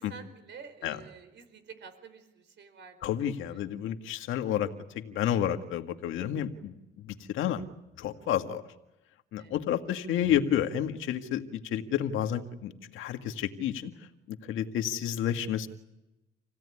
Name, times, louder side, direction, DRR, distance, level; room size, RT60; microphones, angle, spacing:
voice 1, 0.0-3.6 9.4-9.5, right 6 dB, 65° right, 9 dB, 4.6 m, -50 dB
voice 2, 3.0-7.6 8.0-8.6 9.3-13.9 14.3-15.7, left 10 dB, 85° left, 7 dB, 1.9 m, -30 dB
28.0 x 17.0 x 9.9 m, 0.93 s
cardioid pair, 90°, 20 cm